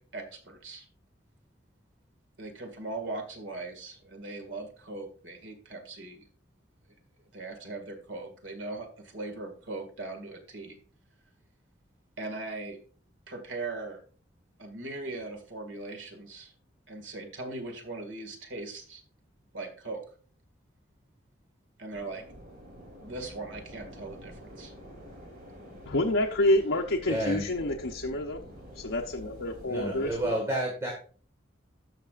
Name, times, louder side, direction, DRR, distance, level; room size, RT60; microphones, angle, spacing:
voice 1, 0.1-0.9 2.4-6.3 7.3-10.8 12.2-12.8 13.3-14.0 14.6-16.5 16.9-19.0 19.5-20.0 21.8-22.2 23.0-24.7, right 2 dB, 75° right, 5 dB, 2.0 m, -39 dB
sound 1, 21.9-30.3, equal, 55° right, 3.2 m, -48 dB
voice 2, 25.9-28.4 28.8-30.1, left 1 dB, 85° left, 0 dB, 0.8 m, -28 dB
voice 3, 27.1-27.5 29.7-30.9, right 1 dB, 15° right, -1 dB, 1.5 m, -30 dB
14.0 x 5.9 x 2.4 m, 0.41 s
head